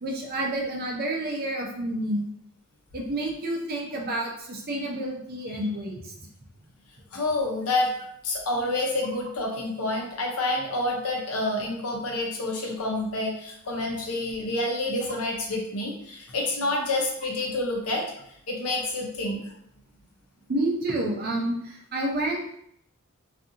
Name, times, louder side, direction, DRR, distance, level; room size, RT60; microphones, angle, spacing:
voice 1, 0.0-2.3 2.9-6.1 20.5-22.5, right 1 dB, 45° right, -1 dB, 0.5 m, -29 dB
voice 2, 7.1-7.9 8.2-18.0 18.5-19.4, left 2 dB, 75° left, 0 dB, 0.7 m, -28 dB
2.7 x 2.4 x 2.6 m, 0.72 s
head